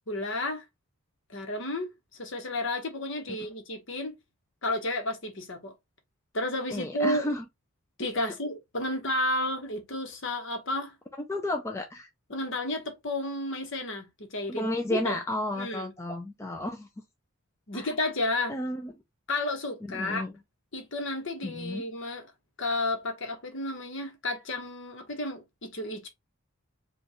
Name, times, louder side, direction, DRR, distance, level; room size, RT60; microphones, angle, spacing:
voice 1, 0.1-0.6 1.3-1.9 2.2-4.1 4.6-5.7 6.3-7.3 8.0-10.9 12.3-15.2 15.5-15.9 17.7-18.6 19.3-20.2 20.7-22.3 22.6-26.1, left 1 dB, 55° left, 1.0 m, -32 dB
voice 2, 6.7-7.4 8.2-8.3 11.3-12.1 14.5-16.9 17.7-17.9 18.5-18.9 19.9-20.3 21.4-21.8, left 1 dB, 10° left, 0.3 m, -32 dB
5.1 x 2.3 x 2.9 m
head